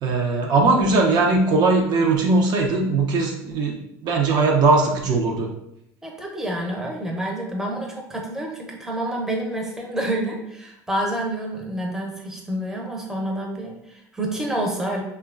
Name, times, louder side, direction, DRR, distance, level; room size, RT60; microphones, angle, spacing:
voice 1, 0.0-5.5, right 3 dB, 50° right, 0 dB, 0.5 m, -19 dB
voice 2, 6.0-15.0, right 1 dB, 5° right, -1 dB, 0.6 m, -28 dB
2.9 x 2.2 x 2.4 m, 0.82 s
supercardioid pair, 90°, 9 cm